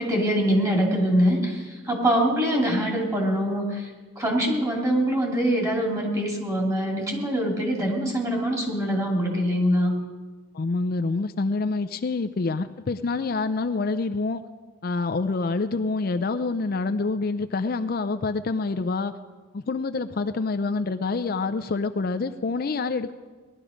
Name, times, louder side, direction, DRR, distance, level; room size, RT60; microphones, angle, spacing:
voice 1, 0.0-3.9 4.2-9.9, equal, 15° right, -1 dB, 2.5 m, -24 dB
voice 2, 10.5-14.4 14.8-19.1 19.5-23.1, left 3 dB, 45° left, 9 dB, 0.4 m, -27 dB
19.0 x 12.0 x 5.1 m, 1.4 s
head